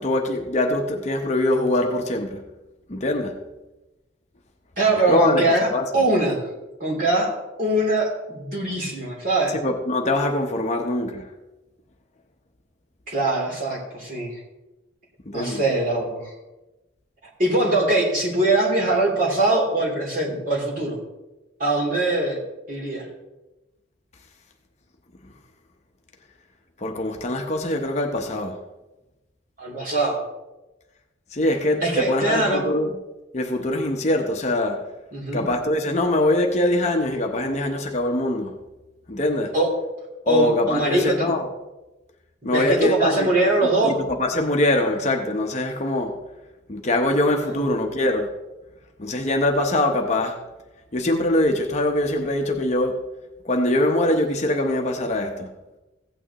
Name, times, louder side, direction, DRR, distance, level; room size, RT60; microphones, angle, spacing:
voice 1, 0.0-2.4 2.9-3.4 5.1-5.4 5.7-5.8 9.6-11.3 15.3-15.6 26.8-28.6 31.3-32.9 33.3-34.9 35.3-38.6 39.1-39.5 40.2-41.5 42.4-43.3 43.8-46.2 46.7-48.3 49.0-50.4 50.9-53.0 53.4-55.5, left 1 dB, 35° left, 0.8 m, -23 dB
voice 2, 4.8-6.4 6.8-7.3 7.6-9.6 13.1-14.4 15.3-16.3 17.4-21.0 21.6-22.4 22.7-23.1 29.6-30.2 31.8-32.7 35.1-35.5 39.5-39.7 40.3-41.3 42.4-44.0 47.4-47.6, right 2 dB, 45° right, 3.1 m, -22 dB
16.0 x 9.0 x 3.0 m
head